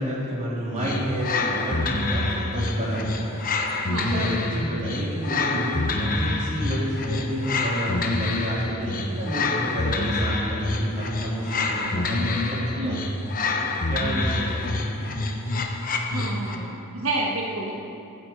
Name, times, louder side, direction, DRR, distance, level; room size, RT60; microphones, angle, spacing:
voice 1, 0.0-3.4 4.0-13.2 13.6-14.9, equal, 35° right, -6 dB, 3.5 m, -30 dB
sound 1, 0.8-16.7, left 2 dB, 40° left, 1.0 m, -27 dB
voice 2, 16.1-17.7, right 2 dB, 80° right, -2 dB, 1.5 m, -29 dB
15.5 x 9.8 x 4.8 m, 2.6 s
head